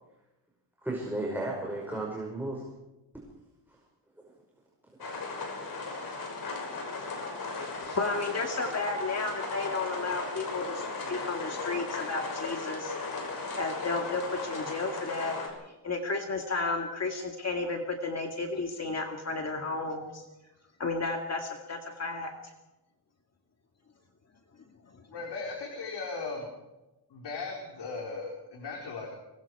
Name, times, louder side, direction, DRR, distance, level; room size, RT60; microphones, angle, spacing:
voice 1, 0.8-2.7 3.7-3.8 4.2-4.3, right 1 dB, 5° right, -3 dB, 5.5 m, -34 dB
sound 1, 5.0-15.5, left 3 dB, 55° left, 6.2 m, -36 dB
voice 2, 7.8-12.9 13.6-15.5 15.8-20.2 20.8-22.3, left 3 dB, 35° left, 3 dB, 2.2 m, -33 dB
voice 3, 25.1-26.5 27.1-29.1, left 4 dB, 70° left, -1 dB, 4.4 m, -37 dB
25.0 x 22.0 x 4.8 m, 1.0 s
wide cardioid pair, 135°, 42 cm